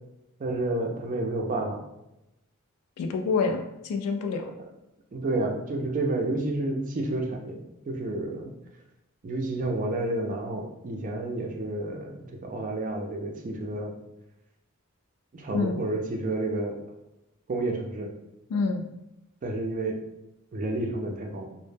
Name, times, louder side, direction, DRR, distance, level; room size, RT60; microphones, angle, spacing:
voice 1, 0.4-1.8 5.1-8.5 9.2-12.2 12.4-14.0 15.3-16.8 17.5-18.1 19.4-20.0 20.5-21.5, right 2 dB, 35° right, 1 dB, 0.3 m, -30 dB
voice 2, 3.0-4.5 15.5-15.8 18.5-18.8, left 4 dB, 80° left, 9 dB, 0.3 m, -27 dB
2.1 x 2.0 x 3.1 m, 0.89 s
head